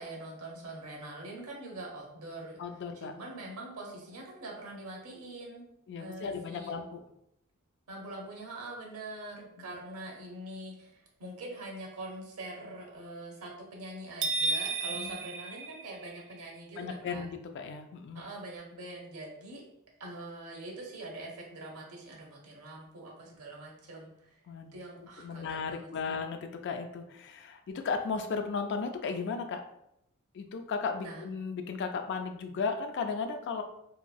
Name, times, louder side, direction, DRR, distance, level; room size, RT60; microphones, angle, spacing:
voice 1, 0.0-5.7 6.0-6.7 7.9-17.2 18.1-19.6 20.0-24.4 24.7-26.2 31.0-31.2, right 2 dB, 90° right, -1 dB, 0.8 m, -44 dB
voice 2, 2.6-3.1 5.9-7.0 9.6-9.7 14.9-15.2 16.8-18.3 24.5-24.8 25.2-29.6 30.3-33.6, left 5 dB, 55° left, 7 dB, 0.3 m, -35 dB
sound 1, 14.2-16.4, right 3 dB, 60° right, 0.3 m, -33 dB
2.9 x 2.6 x 2.3 m, 0.77 s
head